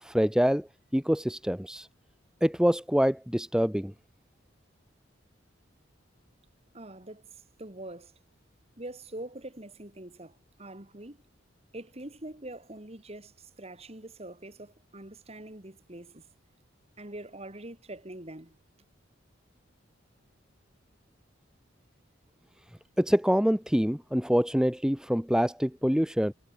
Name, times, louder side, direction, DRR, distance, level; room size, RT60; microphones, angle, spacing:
voice 1, 0.0-0.7 0.9-1.9 2.4-3.9 23.0-26.3, equal, 5° right, 1.0 m, -25 dB
voice 2, 6.7-8.1 8.8-11.2 11.7-16.2 17.0-18.5, right 1 dB, 30° right, 2.4 m, -44 dB
head